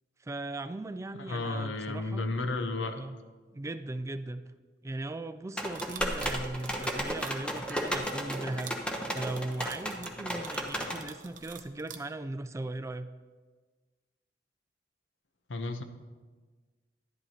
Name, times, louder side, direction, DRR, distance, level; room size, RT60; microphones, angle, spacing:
voice 1, 0.2-2.3 2.9-3.2 3.5-4.4 4.8-8.8 9.1-13.1, right 2 dB, 15° right, 11 dB, 0.3 m, -38 dB
voice 2, 1.2-3.0 15.5-15.8, left 2 dB, 90° left, 7 dB, 0.8 m, -33 dB
sound 1, 5.6-11.0, equal, 5° left, 0.8 m, -34 dB
sound 2, 5.7-12.0, right 8 dB, 45° right, 0.7 m, -47 dB
11.0 x 11.0 x 2.8 m, 1.4 s
head